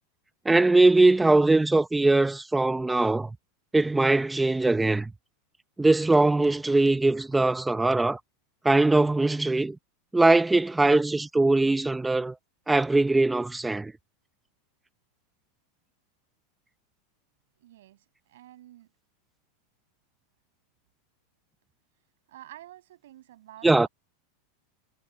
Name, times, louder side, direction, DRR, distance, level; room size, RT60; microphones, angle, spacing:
voice 1, 0.4-3.4 3.7-5.1 5.8-8.2 8.6-9.8 10.1-12.4 12.7-13.9 23.6-23.9, right 2 dB, 5° right, 1.1 m, -21 dB
voice 2, 17.5-18.9 22.3-23.9, right 14 dB, 85° right, 6.9 m, -49 dB
supercardioid pair, 140°, 0 cm